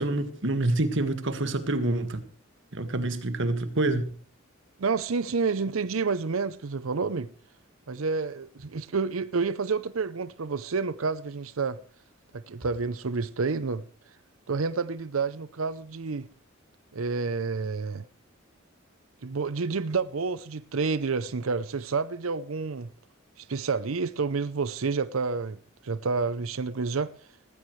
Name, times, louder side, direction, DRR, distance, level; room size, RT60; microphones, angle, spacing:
voice 1, 0.0-2.2 2.7-4.0, right 2 dB, 65° right, 1.8 m, -27 dB
voice 2, 4.8-7.3 7.9-11.8 12.3-13.9 14.5-16.3 16.9-18.1 19.2-22.9 23.4-27.1, right 4 dB, 85° right, 0.7 m, -29 dB
18.5 x 15.5 x 3.2 m
head